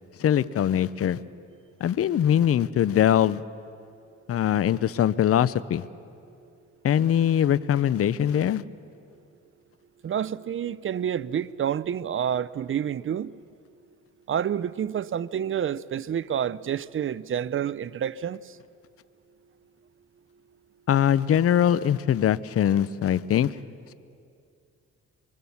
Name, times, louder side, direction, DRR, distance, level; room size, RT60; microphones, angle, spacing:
voice 1, 0.2-1.2 1.8-3.4 4.3-5.8 6.8-8.6 20.9-23.6, left 10 dB, 50° left, 0.7 m, -22 dB
voice 2, 10.0-13.3 14.3-18.4, right 9 dB, 45° right, 0.6 m, -28 dB
24.0 x 24.0 x 7.2 m
cardioid pair, 90°, 30 cm